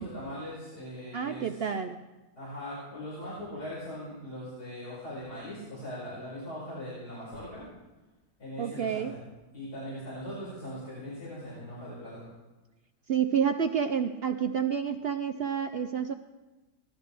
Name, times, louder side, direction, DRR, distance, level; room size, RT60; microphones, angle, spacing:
voice 1, 0.0-1.5 2.4-7.7 8.4-9.3 9.5-12.3, equal, 80° left, -11 dB, 6.3 m, -40 dB
voice 2, 1.1-2.0 8.6-9.1 13.1-16.1, right 7 dB, 70° right, 6 dB, 0.6 m, -29 dB
19.5 x 13.0 x 3.4 m, 1.1 s
omnidirectional pair, 1.6 m